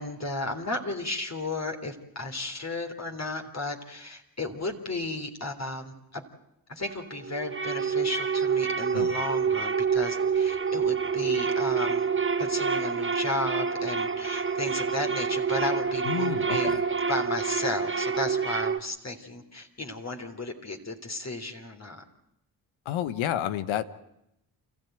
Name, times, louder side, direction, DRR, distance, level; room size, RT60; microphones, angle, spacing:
voice 1, 0.0-6.2 6.7-12.1 12.4-22.0, left 2 dB, 35° left, 4 dB, 3.4 m, -34 dB
sound 1, 6.8-18.8, right 5 dB, 25° right, 1.3 m, -27 dB
voice 2, 16.0-16.8 22.8-23.8, left 11 dB, 80° left, 13 dB, 1.2 m, -30 dB
29.5 x 14.5 x 9.2 m, 0.84 s
hypercardioid pair, 45°, 46 cm